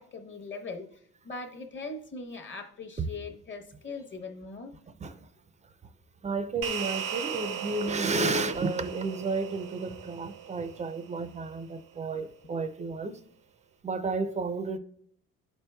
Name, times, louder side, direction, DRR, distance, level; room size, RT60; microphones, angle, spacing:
voice 1, 0.0-4.8, left 3 dB, 35° left, 0.8 m, -41 dB
voice 2, 6.2-13.2 13.8-14.8, right 3 dB, 25° right, 0.4 m, -32 dB
sound 1, 6.6-11.3, right 9 dB, 90° right, 0.6 m, -37 dB
11.0 x 4.4 x 2.2 m
cardioid pair, 125°, 32 cm